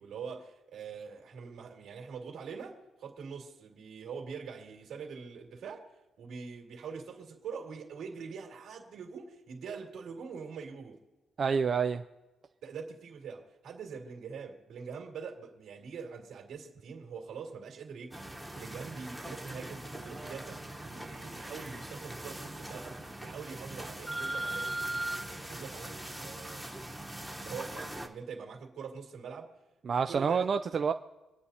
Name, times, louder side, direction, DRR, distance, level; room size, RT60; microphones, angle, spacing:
voice 1, 0.0-5.9 6.2-11.0 12.6-26.7 27.4-29.5 30.1-30.5, right 5 dB, 75° right, 1 dB, 2.4 m, -44 dB
voice 2, 11.4-12.0 29.9-30.9, right 6 dB, 40° right, 7 dB, 0.3 m, -28 dB
sound 1, 18.1-28.1, right 1 dB, ahead, 1.0 m, -40 dB
26.5 x 9.4 x 2.8 m, 1.1 s
cardioid pair, 150°, 0 cm